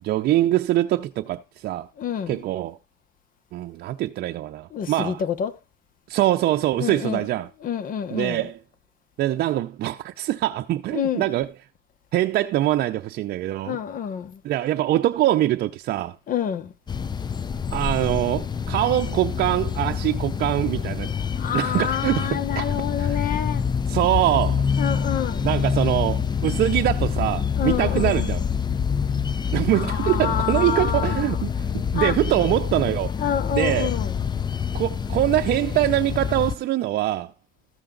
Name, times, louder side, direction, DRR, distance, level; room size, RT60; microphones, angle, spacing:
voice 1, 0.0-1.9 2.3-2.8 3.5-5.2 6.1-7.5 8.1-8.6 9.2-11.5 12.1-13.8 14.4-16.2 17.7-21.1 21.5-23.2 23.9-24.7 25.4-28.4 29.5-33.1 33.5-34.0 34.7-37.3, right 14 dB, 65° right, 0.5 m, -23 dB
voice 2, 2.0-2.4 4.7-5.5 6.8-7.2 7.6-8.4 10.9-11.3 13.6-14.4 16.3-16.7 21.1-23.6 24.8-25.5 27.6-28.2 29.7-31.4 31.9-32.2 33.2-34.2, left 9 dB, 55° left, 1.1 m, -28 dB
sound 1, 16.9-36.6, left 7 dB, 25° left, 0.6 m, -26 dB
14.0 x 6.9 x 3.8 m
cardioid pair, 110°, 17 cm